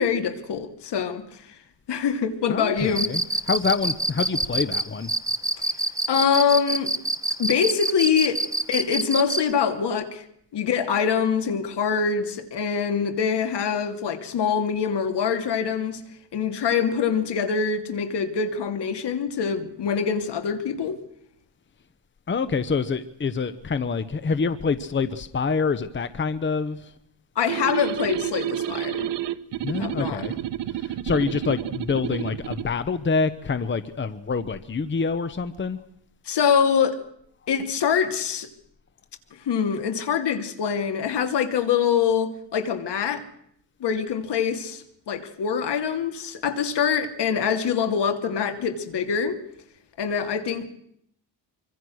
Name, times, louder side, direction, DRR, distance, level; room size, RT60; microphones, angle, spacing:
voice 1, 0.0-1.4 1.9-3.1 6.1-6.9 7.4-8.4 8.7-10.2 10.5-16.0 16.3-21.0 27.4-29.1 29.8-30.3 36.3-37.0 37.5-38.5 39.4-43.2 43.8-49.4 50.0-50.7, left 7 dB, 65° left, 2.9 m, -24 dB
voice 2, 2.5-5.1 22.3-26.9 29.6-30.3 30.7-35.8, left 5 dB, 25° left, 1.0 m, -26 dB
Cricket, 2.9-9.5, right 2 dB, 10° right, 1.2 m, -25 dB
sound 1, 27.5-32.7, right 12 dB, 70° right, 1.3 m, -30 dB
25.0 x 25.0 x 6.4 m
cardioid pair, 125°, 44 cm